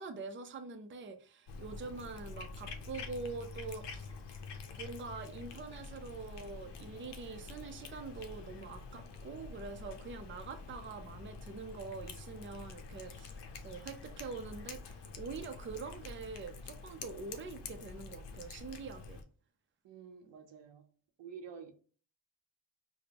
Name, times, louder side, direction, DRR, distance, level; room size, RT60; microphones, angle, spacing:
voice 1, 0.0-4.1 4.7-19.2, right 4 dB, 30° right, 0.5 m, -45 dB
Cat, 1.5-19.2, left 4 dB, 75° left, 0.7 m, -47 dB
voice 2, 19.8-20.9 21.2-21.7, right 6 dB, 85° right, 0.7 m, -49 dB
5.0 x 2.1 x 2.8 m
cardioid pair, 105°, 42 cm